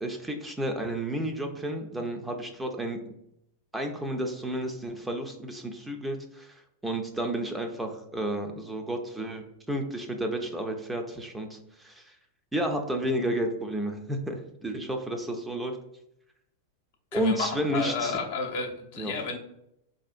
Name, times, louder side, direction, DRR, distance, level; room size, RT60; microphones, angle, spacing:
voice 1, 0.0-3.0 3.7-12.2 12.5-15.8 17.1-18.2 19.0-19.1, right 1 dB, 10° right, 4 dB, 0.5 m, -31 dB
voice 2, 17.1-19.4, left 4 dB, 60° left, 1 dB, 0.7 m, -32 dB
4.2 x 2.6 x 2.4 m, 0.79 s
figure-of-eight pair, 95°, 0 cm